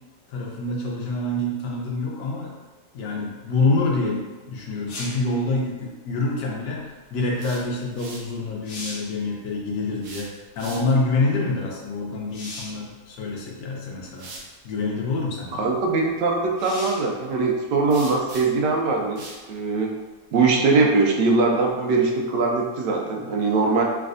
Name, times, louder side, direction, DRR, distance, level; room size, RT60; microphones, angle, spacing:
voice 1, 0.3-2.5 2.9-10.3 10.6-14.3 14.6-15.6, left 2 dB, 85° left, -2 dB, 1.3 m, -26 dB
sound 1, 4.9-5.3 8.0-8.1 8.5-9.2 12.3-12.9 13.9-14.0 16.6-17.1 20.7-20.8, left 2 dB, 60° left, 1.1 m, -37 dB
sound 2, 7.3-8.3 9.9-11.1 13.2-13.3 14.1-14.5 17.9-18.7 19.2-19.4, right 2 dB, 65° right, 0.8 m, -41 dB
voice 2, 15.5-19.2 19.5-20.0 20.3-23.8, right 3 dB, 85° right, 0 dB, 1.2 m, -21 dB
3.4 x 3.1 x 2.5 m, 1.3 s
omnidirectional pair, 1.8 m